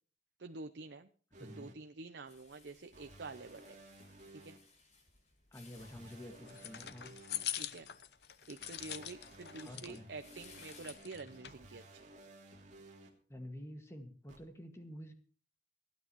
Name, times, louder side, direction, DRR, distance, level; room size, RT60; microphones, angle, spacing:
voice 1, 0.4-1.1 1.4-3.8 4.3-4.6 7.5-7.9 8.5-12.1, right 3 dB, 75° right, 9 dB, 0.7 m, -48 dB
sound 1, 1.3-1.7 2.9-4.6 5.8-7.4 8.6-13.1 14.3-14.4, right 2 dB, 40° right, 2.8 m, -56 dB
voice 2, 1.4-1.7 5.5-7.1 9.6-10.1 13.3-15.1, equal, 15° left, 5 dB, 1.8 m, -49 dB
sound 2, 2.3-11.0, left 4 dB, 40° left, 5.0 m, -63 dB
sound 3, 6.4-10.0 10.4-11.6, left 12 dB, 65° left, 0.8 m, -44 dB
28.0 x 9.4 x 3.1 m, 0.41 s
head